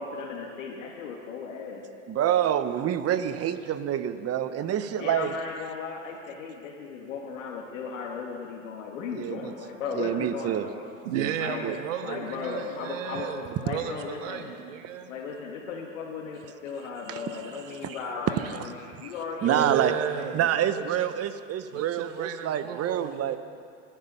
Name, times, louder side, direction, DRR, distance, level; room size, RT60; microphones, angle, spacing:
voice 1, 0.0-1.8 5.0-10.8 11.4-11.7 12.0-13.3 13.6-14.5 15.1-19.7 20.0-20.3, left 5 dB, 80° left, -2 dB, 2.1 m, -36 dB
voice 2, 2.1-5.3 9.1-9.5 10.0-10.7 11.1-11.4 11.6-11.8 17.1-17.2 17.8-18.0 18.5-18.7 19.0-19.1 19.4-19.9 20.3-23.4, right 10 dB, 40° right, 11 dB, 1.1 m, -27 dB
voice 3, 11.0-15.1 17.1-18.0 19.4-20.5 20.8-21.1 21.7-23.4, right 9 dB, 75° right, 8 dB, 1.2 m, -34 dB
25.0 x 10.5 x 5.6 m, 2.3 s
hypercardioid pair, 85°, 38 cm